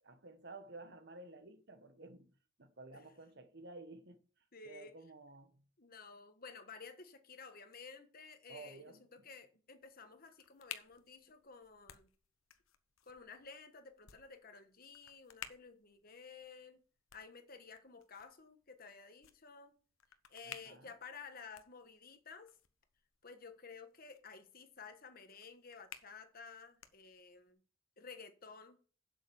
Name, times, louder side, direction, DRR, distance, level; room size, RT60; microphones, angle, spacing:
voice 1, 0.0-4.2 4.6-5.6 8.5-9.0 20.4-20.9, right 2 dB, 55° right, 1.4 m, -53 dB
voice 2, 4.5-4.9 5.8-8.8 9.1-12.1 13.0-16.8 17.1-19.7 20.3-22.6 23.2-27.6 28.0-28.8, left 5 dB, 45° left, 1.4 m, -53 dB
sound 1, 9.8-27.5, left 9 dB, 85° left, 1.0 m, -57 dB
8.0 x 7.5 x 7.1 m
head